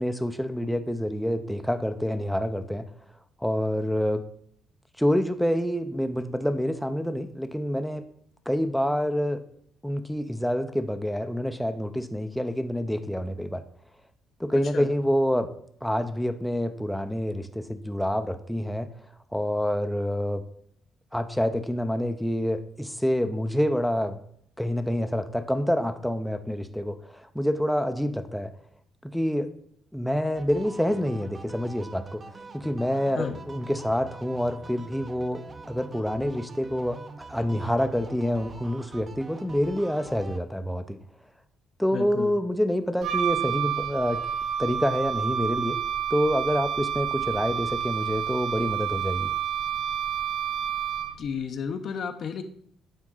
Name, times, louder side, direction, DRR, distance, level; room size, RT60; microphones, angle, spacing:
voice 1, 0.0-2.9 3.4-4.2 5.0-8.0 8.5-9.4 9.8-13.6 14.4-15.5 15.8-18.9 19.3-20.4 21.1-24.2 24.6-28.5 29.0-29.5 29.9-32.2 32.5-41.0 41.8-44.3 44.6-45.8 46.1-49.3, equal, ahead, 7 dB, 0.5 m, -27 dB
voice 2, 14.5-14.9 33.2-33.4 41.9-42.3 51.2-52.4, left 6 dB, 60° left, 8 dB, 0.7 m, -32 dB
sound 1, 30.3-40.4, right 3 dB, 35° right, 0.8 m, -45 dB
Wind instrument woodwind instrument, 43.0-51.3, right 9 dB, 75° right, 0.4 m, -29 dB
9.0 x 3.6 x 3.8 m, 0.66 s
cardioid pair, 90°, 0 cm